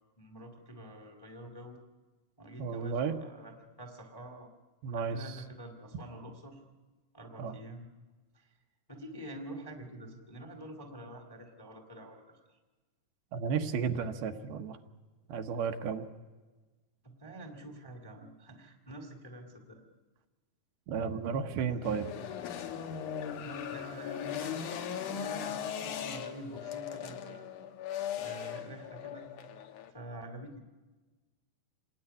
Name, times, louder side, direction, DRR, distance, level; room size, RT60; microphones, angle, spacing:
voice 1, 0.0-1.8 2.4-3.5 3.8-4.5 4.9-6.6 7.1-7.9 8.3-8.5 8.9-12.2 17.0-19.8 21.6-21.8 23.4-27.5 28.2-29.3 29.9-30.6, right 1 dB, 10° left, 4 dB, 1.4 m, -47 dB
voice 2, 2.6-3.2 4.8-5.4 7.4-7.6 13.3-14.8 15.3-16.1 20.9-22.1, right 6 dB, 75° right, 6 dB, 2.8 m, -33 dB
sound 1, 21.8-29.9, left 9 dB, 65° left, 2.3 m, -39 dB
27.0 x 19.5 x 9.9 m, 1.3 s
omnidirectional pair, 4.6 m